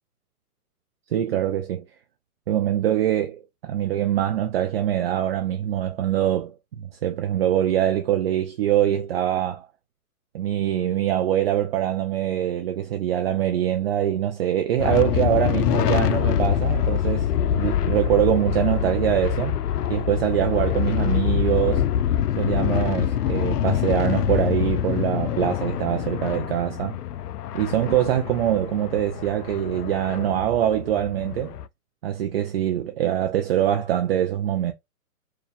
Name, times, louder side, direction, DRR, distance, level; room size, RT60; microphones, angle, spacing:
voice 1, 1.1-1.8 2.5-9.7 10.3-19.6 19.9-21.9 22.4-27.0 27.5-31.6 32.0-34.7, right 11 dB, 40° right, 0.5 m, -24 dB
sound 1, 14.8-31.7, left 10 dB, 85° left, 0.6 m, -25 dB
4.6 x 2.4 x 3.3 m
hypercardioid pair, 140°, 46 cm